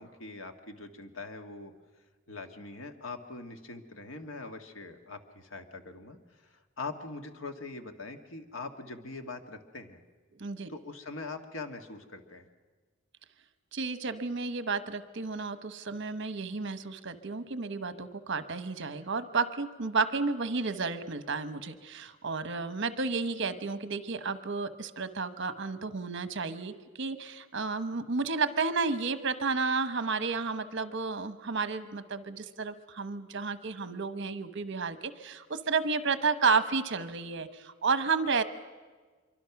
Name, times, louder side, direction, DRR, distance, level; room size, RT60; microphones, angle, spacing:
voice 1, 0.0-1.7 2.3-10.0 10.7-12.4, left 3 dB, 80° left, 6 dB, 1.7 m, -42 dB
voice 2, 10.4-10.7 13.7-38.4, right 4 dB, 65° right, 11 dB, 1.1 m, -32 dB
25.5 x 23.5 x 5.9 m, 1.4 s
head